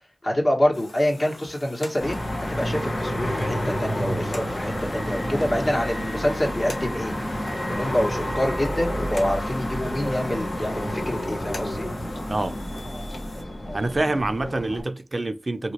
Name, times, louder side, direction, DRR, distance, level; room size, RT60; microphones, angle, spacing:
voice 1, 0.2-2.2 2.5-7.1 7.7-11.9, left 1 dB, 50° left, 1.4 m, -26 dB
sound 1, 0.7-13.4, left 2 dB, 90° left, 0.8 m, -45 dB
sound 2, 2.0-14.8, equal, 70° left, 1.1 m, -30 dB
sound 3, 3.2-9.2, equal, ahead, 0.5 m, -36 dB
voice 2, 13.7-15.7, right 2 dB, 55° right, 0.4 m, -26 dB
3.1 x 2.9 x 2.8 m
cardioid pair, 40°, 0 cm